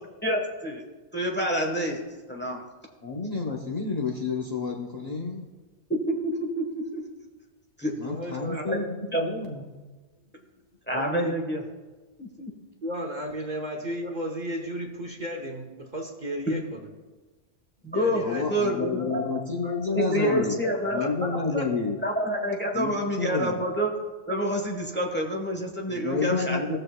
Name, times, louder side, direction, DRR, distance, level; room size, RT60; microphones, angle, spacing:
voice 1, 0.2-0.8 1.1-2.0 2.3-2.6 5.9-7.0 7.8-7.9 8.5-8.8 9.1-9.2 10.9-11.6 12.2-12.5 16.5-16.6 17.8-19.2 20.0-21.0 22.0-23.9 24.3-26.8, equal, 10° left, 0 dB, 1.0 m, -28 dB
voice 2, 3.0-5.5 8.0-9.6 18.1-20.6 20.9-22.0 22.7-23.6 25.9-26.8, left 4 dB, 40° left, -2 dB, 0.9 m, -30 dB
voice 3, 8.1-8.7 10.9-11.3 12.8-16.8 17.9-18.4 18.7-19.3 19.6-20.5 21.0-21.6, equal, 40° right, 1 dB, 1.0 m, -34 dB
17.5 x 6.5 x 2.2 m, 1.3 s
omnidirectional pair, 1.2 m